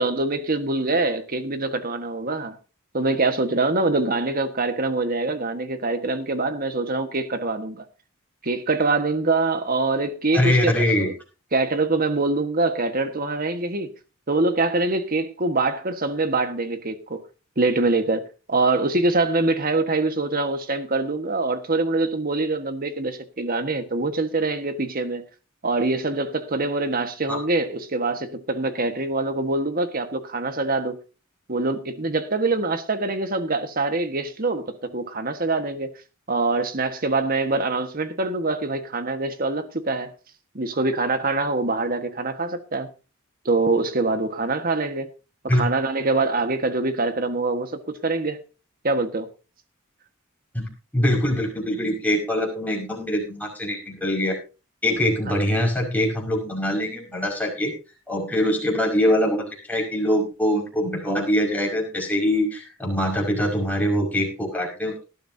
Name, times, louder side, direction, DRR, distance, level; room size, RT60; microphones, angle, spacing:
voice 1, 0.0-2.6 2.9-7.8 8.4-11.1 11.5-13.9 14.3-17.2 17.6-25.2 25.6-31.0 31.5-35.9 36.3-40.1 40.5-42.9 43.4-45.1 45.5-48.4 48.8-49.3, right 3 dB, 40° right, 1.5 m, -24 dB
voice 2, 10.3-11.1 27.3-27.4 45.5-45.6 50.5-54.4 54.8-57.7 58.1-65.0, left 1 dB, 10° left, 5.5 m, -23 dB
18.5 x 12.5 x 2.8 m
head